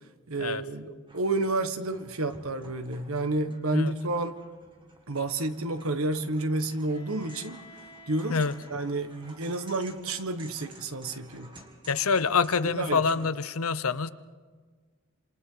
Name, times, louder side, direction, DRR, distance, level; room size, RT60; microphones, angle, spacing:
voice 1, 0.3-4.4 5.1-7.6 8.1-8.4 8.7-11.6 12.6-13.1, right 2 dB, 80° right, 8 dB, 1.5 m, -30 dB
sound 1, 1.1-13.3, right 2 dB, 20° right, 2.3 m, -53 dB
Bowed string instrument, 6.9-10.7, left 2 dB, 25° left, 5.9 m, -54 dB
voice 2, 11.9-14.1, left 5 dB, 85° left, 14 dB, 0.9 m, -26 dB
27.5 x 27.5 x 4.0 m, 1.5 s
head